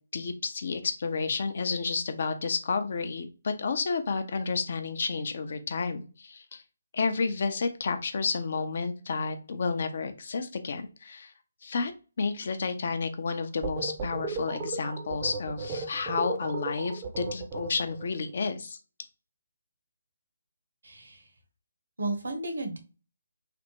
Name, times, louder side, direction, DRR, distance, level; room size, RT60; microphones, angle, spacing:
voice 1, 0.1-6.6 6.9-11.3 11.6-11.9 12.2-18.8, left 4 dB, 50° left, 8 dB, 0.5 m, -31 dB
sound 1, 13.6-18.1, right 4 dB, 25° right, 0.6 m, -35 dB
voice 2, 20.8-21.2 22.0-22.8, right 2 dB, 70° right, 5 dB, 0.9 m, -33 dB
3.3 x 2.0 x 3.0 m, 0.33 s
figure-of-eight pair, 145°, 0 cm